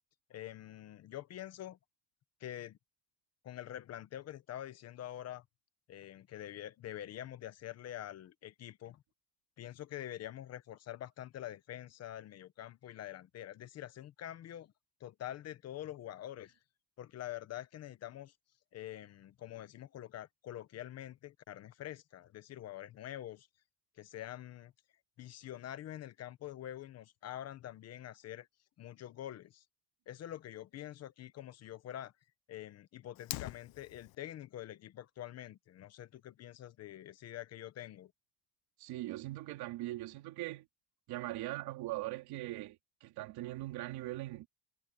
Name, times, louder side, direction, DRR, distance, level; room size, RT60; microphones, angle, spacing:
voice 1, 0.3-1.8 2.4-2.8 3.4-5.4 5.9-9.0 9.6-14.7 15.0-16.6 17.0-18.3 18.7-23.5 24.0-24.7 25.2-28.5 28.8-29.6 30.1-32.1 32.5-38.1, left 12 dB, 40° left, 1.0 m, -46 dB
Fire, 33.1-34.1, left 21 dB, 65° left, 0.7 m, -43 dB
voice 2, 38.8-40.7 41.1-44.5, right 17 dB, 65° right, 3.6 m, -41 dB
cardioid pair, 170°, 41 cm